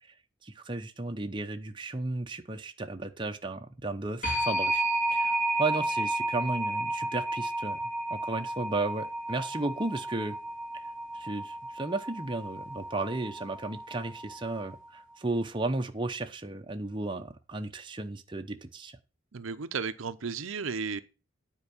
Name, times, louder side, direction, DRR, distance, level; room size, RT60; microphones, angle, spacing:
voice 1, 0.4-4.8 5.1-7.8 8.1-10.4 10.7-10.8 11.1-19.0, right 2 dB, 25° right, 0.7 m, -34 dB
sound 1, 4.2-14.8, right 1 dB, 40° left, 3.0 m, -32 dB
voice 2, 19.3-21.0, right 5 dB, 75° right, 0.7 m, -34 dB
9.7 x 4.6 x 7.0 m
head